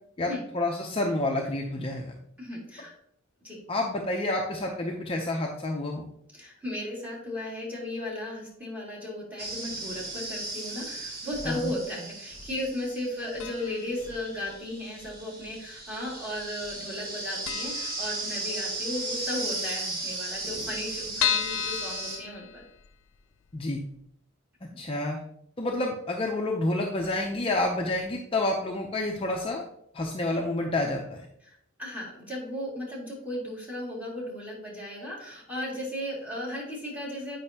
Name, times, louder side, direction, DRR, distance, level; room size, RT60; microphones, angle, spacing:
voice 1, 0.2-2.1 3.7-6.0 11.4-11.7 23.5-23.8 24.8-25.2 25.6-29.6 29.9-31.3, left 2 dB, 25° left, 0 dB, 0.6 m, -29 dB
voice 2, 2.4-2.9 3.4-3.6 6.3-22.6 31.4-37.4, left 1 dB, 10° right, -5 dB, 2.3 m, -35 dB
sound 1, 9.4-22.2, right 2 dB, 45° right, 1.3 m, -36 dB
sound 2, 13.4-13.9 14.2-14.3 15.2-15.9 16.2-16.4 16.7-16.8 17.1-17.2 17.5-18.8 19.2-19.3 19.5-19.6 19.8-19.9 20.4-23.0 23.5-23.6 24.0-24.1, left 10 dB, 70° left, 0.4 m, -32 dB
8.6 x 5.4 x 2.8 m, 0.72 s
head